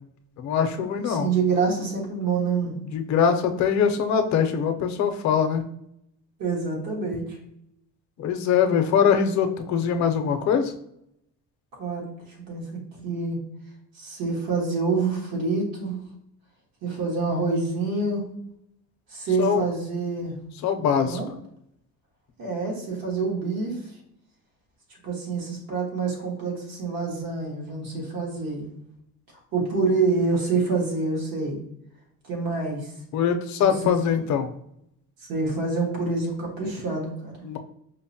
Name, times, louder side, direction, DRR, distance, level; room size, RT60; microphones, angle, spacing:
voice 1, 0.4-1.3 2.9-5.6 8.2-10.7 19.4-19.6 20.6-21.2 33.1-34.5 37.4-37.6, left 7 dB, 55° left, 7 dB, 0.5 m, -22 dB
voice 2, 0.9-2.8 6.4-7.4 11.8-12.1 12.5-13.4 13.9-16.0 16.8-18.3 19.1-20.3 21.0-21.3 22.4-23.8 25.0-28.7 29.5-31.6 32.2-32.9 33.6-33.8 34.1-34.2 35.3-37.5, right 4 dB, 80° right, -1 dB, 1.4 m, -27 dB
5.1 x 2.0 x 2.6 m, 0.76 s
cardioid pair, 155°, 34 cm